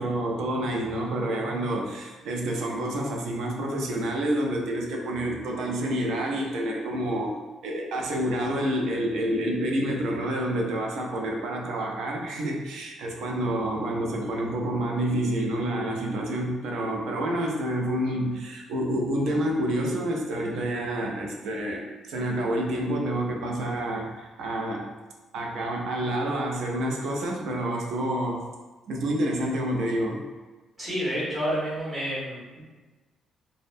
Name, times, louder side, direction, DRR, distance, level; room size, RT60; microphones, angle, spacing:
voice 1, 0.0-7.4 7.6-24.8 25.3-28.4 28.9-30.2, right 1 dB, 80° right, 0 dB, 0.4 m, -28 dB
voice 2, 30.8-32.6, equal, 25° right, -9 dB, 1.3 m, -29 dB
2.6 x 2.1 x 2.5 m, 1.3 s
cardioid pair, 105°, 0 cm